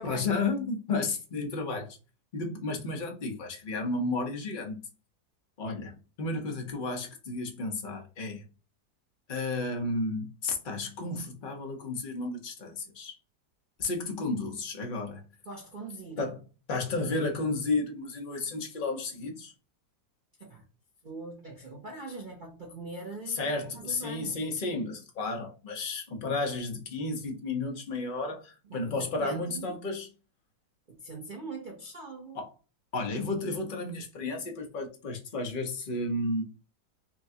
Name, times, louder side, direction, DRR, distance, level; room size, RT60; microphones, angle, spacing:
voice 1, 0.0-2.0 2.3-4.8 5.6-8.4 9.3-13.2 13.8-15.2 16.2-16.4 16.7-19.5 23.3-30.1 32.3-32.5 32.9-36.4, left 3 dB, 40° left, 0.8 m, -32 dB
voice 2, 15.4-16.3 20.4-20.6 21.0-24.4 28.7-29.8 30.9-32.4, right 3 dB, 70° right, 0.4 m, -42 dB
5.9 x 2.3 x 2.7 m
omnidirectional pair, 2.1 m